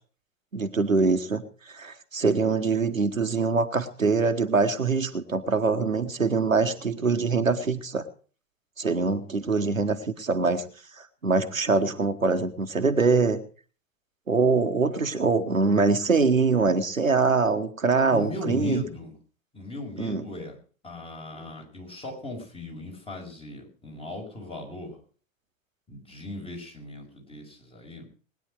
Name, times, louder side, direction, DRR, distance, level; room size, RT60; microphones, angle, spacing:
voice 1, 0.5-1.4 1.7-8.0 8.8-10.6 11.2-13.4 14.3-18.8 20.0-20.3, right 4 dB, 85° right, 7 dB, 1.4 m, -23 dB
voice 2, 18.1-19.1 19.5-20.6 20.8-25.0 25.9-28.1, left 1 dB, 15° left, 1 dB, 5.5 m, -37 dB
20.0 x 9.9 x 4.9 m, 0.40 s
figure-of-eight pair, 95°, 39 cm